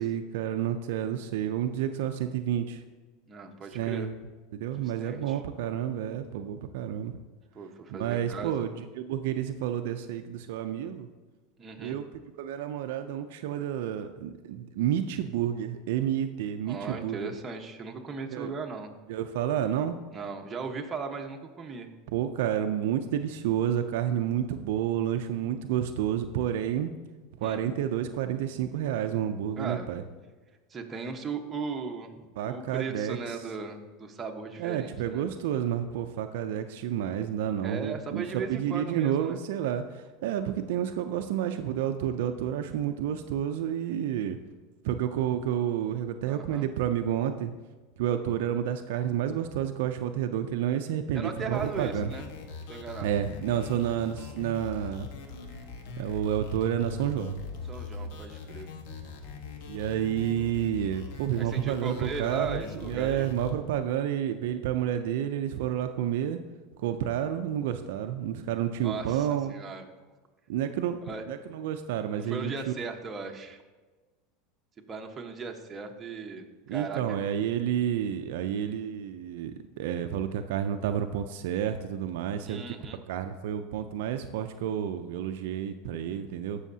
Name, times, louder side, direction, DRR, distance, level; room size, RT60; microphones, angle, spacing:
voice 1, 0.0-2.8 3.7-4.1 4.5-7.2 7.9-11.1 11.8-12.1 12.4-17.2 18.3-18.5 19.1-20.0 22.1-26.9 27.4-30.0 32.4-33.2 34.6-44.4 44.8-47.5 48.0-52.1 53.0-55.1 56.0-57.4 59.7-66.4 66.8-69.5 70.5-71.0 71.3-72.7 76.7-82.8 83.1-86.6, right 10 dB, 75° right, 7 dB, 0.5 m, -30 dB
voice 2, 3.3-4.1 4.8-5.4 7.5-8.6 11.6-12.0 16.7-18.9 20.1-21.9 27.4-27.6 29.6-29.9 30.7-32.1 32.4-35.2 37.6-39.4 46.3-46.7 51.1-52.3 52.7-53.1 57.7-58.7 61.4-63.3 68.8-69.8 71.0-71.2 72.2-73.6 74.9-77.2 82.5-83.0, right 4 dB, 20° right, 2 dB, 1.1 m, -37 dB
sound 1, 51.5-63.5, left 4 dB, 65° left, 1.3 m, -41 dB
15.0 x 6.3 x 2.8 m, 1.3 s
supercardioid pair, 115°, 0 cm